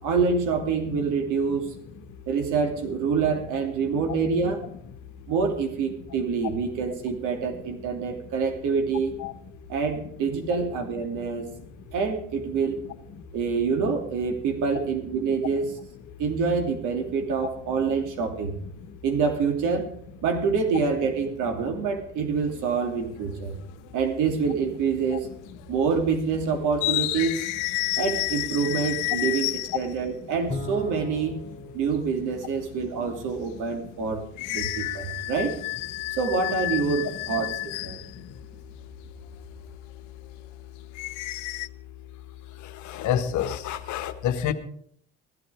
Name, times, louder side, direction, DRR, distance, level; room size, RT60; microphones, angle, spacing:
voice 1, 0.0-1.7 2.3-4.6 5.3-9.2 9.7-11.5 11.9-12.8 13.3-15.7 16.2-18.6 19.0-19.9 20.2-23.6 23.9-25.3 25.7-27.5 28.0-31.4 31.7-34.2 34.5-35.5 36.2-37.5 37.8-38.0, right 5 dB, 55° right, 4 dB, 2.9 m, -26 dB
sound 1, 22.4-22.7 23.9-24.0 25.0-25.3 25.6-25.7 26.7-30.0 34.4-38.2 41.0-41.7, left 20 dB, 70° left, 0.7 m, -30 dB
Bowed string instrument, 30.5-33.1, left 3 dB, 20° left, 2.6 m, -38 dB
voice 2, 42.8-44.5, left 9 dB, 55° left, 9 dB, 1.4 m, -27 dB
15.5 x 12.0 x 5.0 m, 0.63 s
hypercardioid pair, 75°, 36 cm